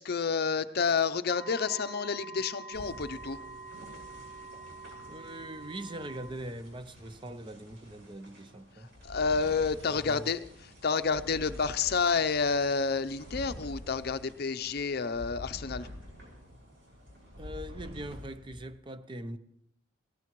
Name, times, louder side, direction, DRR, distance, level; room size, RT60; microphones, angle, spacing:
voice 1, 0.0-3.4 8.8-15.9, left 5 dB, 50° left, 0.6 m, -29 dB
sound 1, 1.3-6.3, right 3 dB, 45° right, 4.7 m, -45 dB
sound 2, 2.7-18.6, left 1 dB, 65° right, 5.6 m, -48 dB
voice 2, 5.1-8.9 9.9-10.3 17.4-19.4, right 1 dB, 25° right, 0.7 m, -42 dB
18.5 x 18.5 x 3.1 m
head